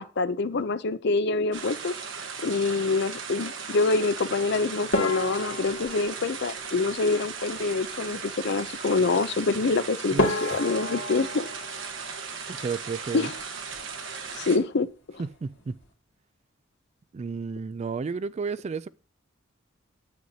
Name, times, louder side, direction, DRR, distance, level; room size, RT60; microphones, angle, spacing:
voice 1, 0.0-1.9 2.4-11.5 13.1-13.3 14.3-14.9, left 3 dB, 60° left, 0.6 m, -26 dB
sound 1, 1.5-14.6, right 5 dB, 70° right, 1.2 m, -37 dB
sound 2, 4.9-7.4 9.6-9.7 10.2-12.9 13.2-14.0 14.3-14.5 14.8-14.9 15.5-15.8, left 1 dB, 85° left, 2.2 m, -32 dB
voice 2, 10.1-10.6 12.5-13.3 15.2-15.8 17.1-18.9, right 5 dB, 35° right, 0.3 m, -32 dB
9.3 x 8.1 x 2.8 m
head